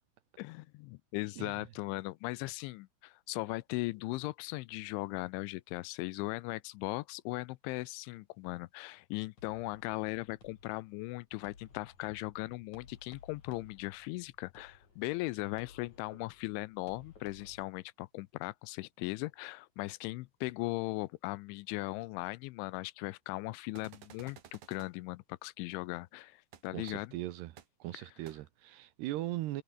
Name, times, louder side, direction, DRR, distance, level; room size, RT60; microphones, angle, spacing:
voice 1, 0.4-27.2 27.9-28.0, left 21 dB, 85° left, 3.0 m, -38 dB
sound 1, 9.4-17.6, left 5 dB, 40° left, 5.6 m, -58 dB
sound 2, 23.7-24.9 26.5-26.6 26.9-27.0 27.6-27.7 28.3-28.4, right 10 dB, 55° right, 3.1 m, -53 dB
voice 2, 26.7-27.5 27.8-29.6, right 15 dB, 75° right, 2.7 m, -39 dB
omnidirectional pair, 5.5 m